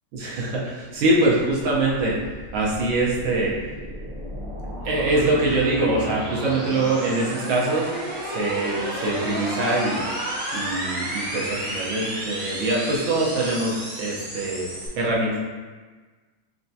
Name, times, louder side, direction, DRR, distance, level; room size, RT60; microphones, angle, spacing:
voice 1, 0.1-2.2 2.5-3.5 4.8-7.9 8.2-10.0 10.5-14.7 14.9-15.4, right 2 dB, 70° right, -4 dB, 1.6 m, -23 dB
sound 1, 1.7-14.9, right 1 dB, 85° right, 0.4 m, -32 dB
4.3 x 3.4 x 2.7 m, 1.4 s
omnidirectional pair, 2.3 m